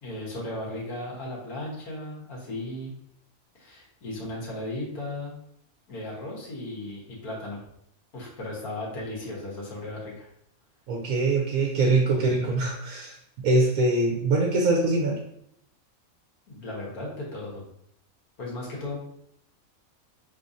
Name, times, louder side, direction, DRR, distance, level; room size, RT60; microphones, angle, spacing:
voice 1, 0.0-2.9 3.5-5.4 5.9-7.6 8.1-10.3 16.5-17.6 18.4-19.0, left 1 dB, 85° left, -4 dB, 1.9 m, -36 dB
voice 2, 10.9-13.2 13.4-15.2, right 2 dB, 75° right, 0 dB, 1.2 m, -23 dB
4.9 x 3.8 x 2.7 m, 0.74 s
omnidirectional pair, 1.5 m